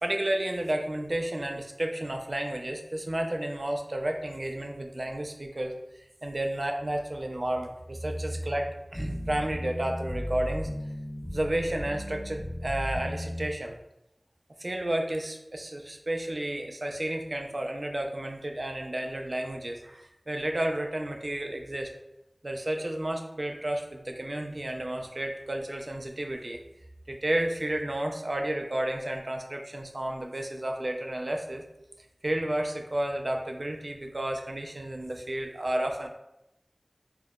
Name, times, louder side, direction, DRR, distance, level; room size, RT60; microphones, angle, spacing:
voice 1, 0.0-10.7 11.3-13.7 14.6-21.9 22.4-26.6 27.1-31.7 32.2-36.1, right 1 dB, 55° right, 2 dB, 0.3 m, -32 dB
sound 1, 8.9-13.5, equal, 25° left, 1.4 m, -35 dB
2.8 x 2.1 x 2.2 m, 0.86 s
wide cardioid pair, 40°, 0 cm